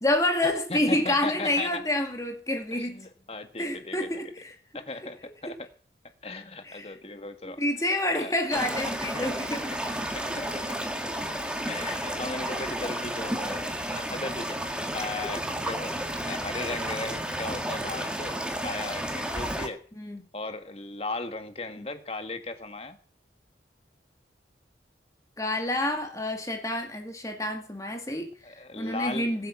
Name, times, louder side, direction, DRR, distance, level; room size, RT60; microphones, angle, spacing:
voice 1, 0.0-3.1 3.6-4.5 6.6-6.9 7.6-9.4 20.0-20.2 21.8-21.9 25.4-29.5, left 1 dB, 20° left, 4 dB, 2.3 m, -28 dB
voice 2, 0.7-1.8 2.7-4.1 4.7-5.6 6.2-7.6 8.1-8.3 9.0-9.7 10.1-10.7 11.7-15.9 16.3-19.8 20.3-23.0 28.4-29.4, left 2 dB, 35° left, 7 dB, 1.9 m, -37 dB
sound 1, 8.5-19.7, right 1 dB, 5° right, 1.9 m, -32 dB
21.0 x 8.6 x 6.1 m, 0.40 s
head